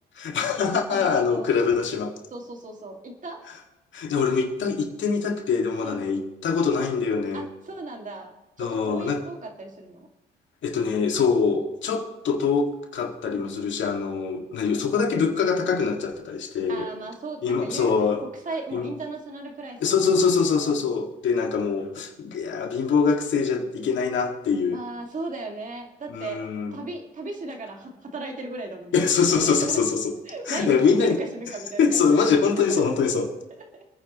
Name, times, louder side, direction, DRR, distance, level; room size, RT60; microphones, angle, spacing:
voice 1, 0.2-2.2 3.9-7.5 8.6-9.2 10.6-16.9 17.4-18.3 18.7-18.9 19.8-24.8 26.1-26.7 28.9-30.1 30.5-31.2 31.8-33.3, left 5 dB, 70° left, 3 dB, 2.0 m, -23 dB
voice 2, 0.9-1.5 2.3-3.4 5.8-6.1 7.3-8.3 8.6-10.1 13.2-13.5 16.7-20.0 20.5-20.9 24.7-26.4 26.7-29.0 29.3-29.8 30.3-32.2 32.5-32.8 33.7-33.8, right 2 dB, 40° right, 2 dB, 2.2 m, -36 dB
27.0 x 9.6 x 3.0 m, 0.98 s
cardioid pair, 90°, 20 cm